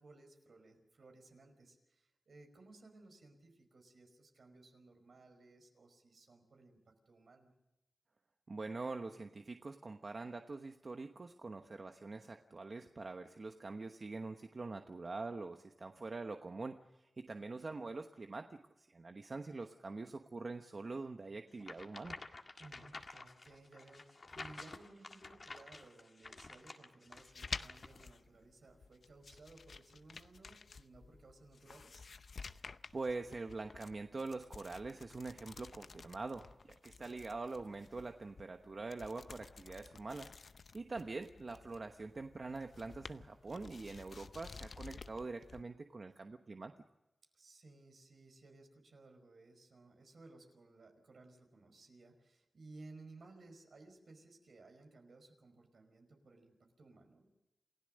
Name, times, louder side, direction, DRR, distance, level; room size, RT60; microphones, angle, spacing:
voice 1, 0.0-7.5 22.6-32.1 47.3-57.3, right 2 dB, 75° right, 5 dB, 5.0 m, -59 dB
voice 2, 8.5-22.2 32.6-46.7, right 3 dB, 50° right, 5 dB, 1.1 m, -44 dB
sound 1, 21.6-28.1, left 3 dB, 50° left, 1.8 m, -51 dB
sound 2, 27.1-45.6, left 4 dB, 70° left, 0.7 m, -52 dB
28.5 x 16.5 x 6.5 m, 0.93 s
wide cardioid pair, 95°, 0 cm